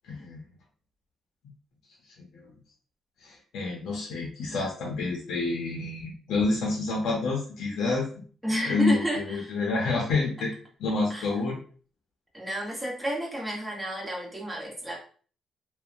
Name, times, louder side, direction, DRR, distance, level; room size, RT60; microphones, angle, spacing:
voice 1, 0.1-0.5 2.2-2.5 3.2-8.1 8.7-10.5 10.8-11.6, left 3 dB, 85° left, -1 dB, 0.6 m, -28 dB
voice 2, 8.4-9.5 11.1-11.3 12.3-15.0, right 1 dB, 5° right, -4 dB, 1.0 m, -31 dB
2.7 x 2.1 x 2.4 m, 0.42 s
cardioid pair, 90°, 0 cm